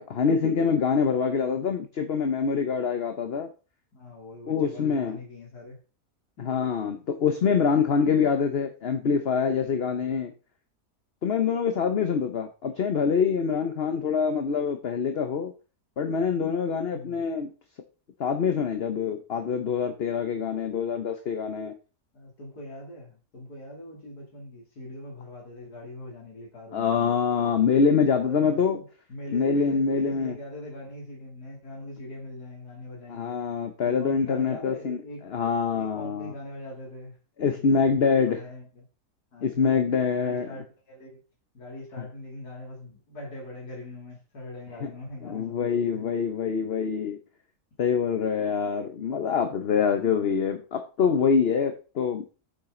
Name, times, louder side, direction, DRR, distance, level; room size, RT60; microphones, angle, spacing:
voice 1, 0.0-3.5 4.5-5.2 6.4-10.3 11.2-15.5 16.0-17.5 18.2-21.7 26.7-28.8 29.3-30.3 33.1-35.0 35.3-36.3 37.4-38.4 39.4-40.5 44.8-44.9 45.2-47.2 47.8-52.2, left 6 dB, 45° left, 1.0 m, -25 dB
voice 2, 3.9-5.8 6.4-6.6 9.8-10.1 16.9-17.2 20.3-20.5 22.1-26.9 27.6-33.4 33.8-35.3 35.7-37.2 37.5-38.9 39.3-41.2 41.5-46.1 49.6-50.1, left 1 dB, 75° left, 3.4 m, -42 dB
9.0 x 7.5 x 3.8 m
omnidirectional pair, 1.7 m